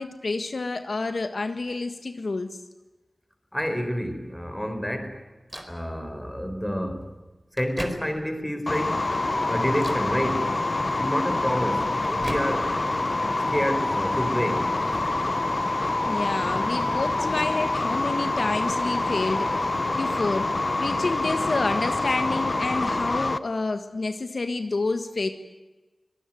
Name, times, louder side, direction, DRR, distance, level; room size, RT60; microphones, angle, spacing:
voice 1, 0.0-2.6 16.0-19.7 19.9-20.5 20.8-25.3, left 3 dB, 70° left, 8 dB, 1.6 m, -29 dB
voice 2, 3.5-5.2 5.6-7.1 7.5-9.1 9.4-10.5 11.0-12.7 13.5-14.7, equal, 10° left, 7 dB, 4.8 m, -29 dB
Microwave oven, 5.5-5.8 6.8-6.9 7.3-8.4 8.9-9.3 9.7-10.1 11.4-12.9 13.2-14.3 14.8-19.1, right 1 dB, 20° right, 4.4 m, -42 dB
sound 1, 8.7-23.4, left 2 dB, 45° left, 1.0 m, -26 dB
25.0 x 18.5 x 9.3 m, 1.1 s
wide cardioid pair, 55°, 0 cm